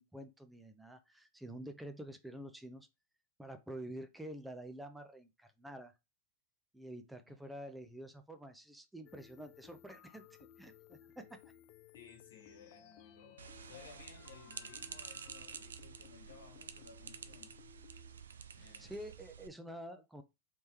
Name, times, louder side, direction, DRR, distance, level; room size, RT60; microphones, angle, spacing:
voice 1, 0.0-2.9 3.4-5.9 6.7-10.3 10.6-11.4 18.6-20.2, right 1 dB, 5° right, 0.5 m, -48 dB
sound 1, 9.1-18.4, left 10 dB, 50° left, 0.4 m, -60 dB
voice 2, 11.9-17.6 18.5-19.1, left 6 dB, 80° left, 1.3 m, -58 dB
sound 2, 13.4-19.5, right 6 dB, 80° right, 0.3 m, -50 dB
3.4 x 3.1 x 2.9 m
hypercardioid pair, 100°, 0 cm